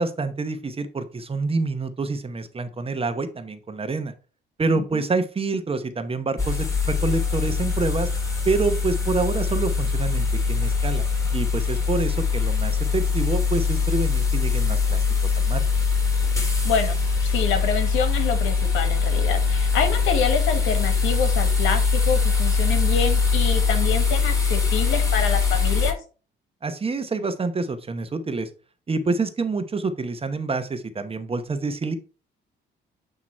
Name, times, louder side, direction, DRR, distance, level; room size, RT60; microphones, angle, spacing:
voice 1, 0.0-4.1 4.6-8.1 8.4-11.0 11.3-15.6 26.6-28.5 28.9-32.0, right 3 dB, 30° right, 10 dB, 0.9 m, -27 dB
voice 2, 4.7-5.0 16.6-26.0, left 6 dB, 90° left, 7 dB, 1.3 m, -27 dB
sound 1, 6.4-25.9, left 5 dB, 15° left, 2.1 m, -22 dB
8.6 x 3.0 x 4.3 m, 0.35 s
cardioid pair, 90°, 20 cm